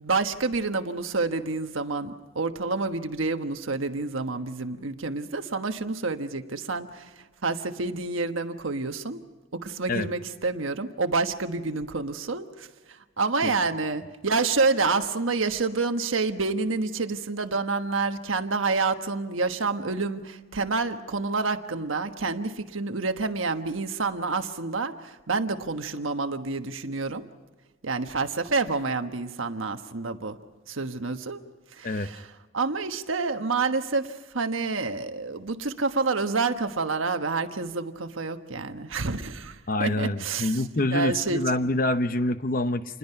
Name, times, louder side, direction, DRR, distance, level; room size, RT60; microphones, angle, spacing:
voice 1, 0.0-7.1 7.4-9.2 9.5-12.7 13.2-27.2 27.8-30.4 30.7-31.4 31.7-32.3 32.5-40.6 40.9-41.4, right 3 dB, 85° right, 7 dB, 1.3 m, -28 dB
voice 2, 39.7-43.0, left 2 dB, 45° left, 11 dB, 0.8 m, -26 dB
28.0 x 21.0 x 5.8 m, 1.3 s
head